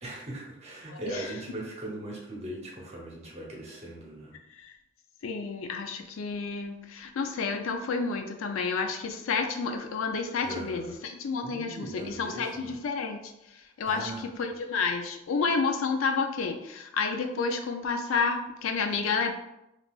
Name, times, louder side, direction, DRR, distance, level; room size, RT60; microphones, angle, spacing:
voice 1, 0.0-4.4 10.4-10.9 11.4-12.8 13.8-14.2, right 1 dB, 35° right, -4 dB, 0.9 m, -39 dB
voice 2, 0.9-1.3 4.5-4.8 5.2-19.3, left 4 dB, 85° left, 5 dB, 0.4 m, -30 dB
3.7 x 2.4 x 2.3 m, 0.87 s
head